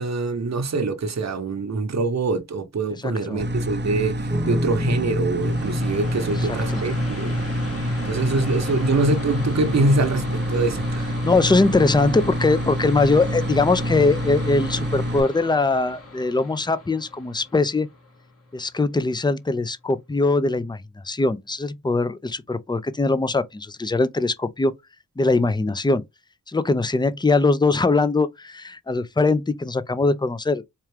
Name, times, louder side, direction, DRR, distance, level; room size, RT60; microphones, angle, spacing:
voice 1, 0.0-4.2 4.5-7.4 8.0-11.1, right 3 dB, 50° right, 0.9 m, -24 dB
voice 2, 3.0-3.4 6.4-6.8 11.2-17.9 18.5-24.7 25.2-26.0 26.5-30.6, left 3 dB, 15° left, 0.5 m, -21 dB
sound 1, 3.4-15.2, equal, 30° right, 0.6 m, -27 dB
sound 2, 4.3-16.8, left 1 dB, 10° right, 1.0 m, -34 dB
sound 3, 5.4-18.7, left 3 dB, 40° left, 1.6 m, -39 dB
4.5 x 2.4 x 3.3 m
cardioid pair, 45°, 34 cm